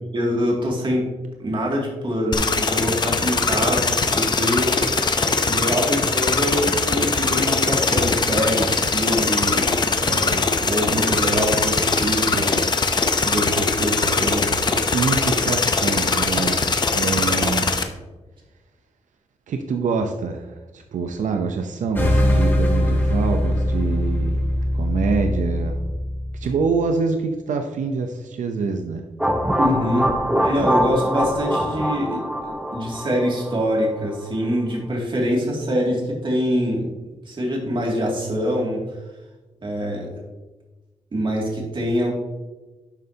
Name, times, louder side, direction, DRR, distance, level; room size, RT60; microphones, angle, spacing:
voice 1, 0.1-1.0 1.4-5.2 5.4-12.5 13.2-14.4 29.6-30.1 30.4-36.9 37.3-38.8 39.6-40.1 41.1-42.1, equal, 40° right, -1 dB, 2.5 m, -24 dB
sound 1, 2.3-17.8, left 4 dB, 35° left, 0.7 m, -21 dB
voice 2, 14.9-17.7 19.5-24.4 24.7-25.8 26.3-29.0, right 4 dB, 90° right, 5 dB, 0.7 m, -25 dB
sound 2, 22.0-26.8, left 1 dB, 15° left, 1.7 m, -21 dB
sound 3, 29.2-34.0, equal, 5° right, 1.0 m, -23 dB
11.0 x 7.7 x 2.8 m, 1.2 s
wide cardioid pair, 150°, 12 cm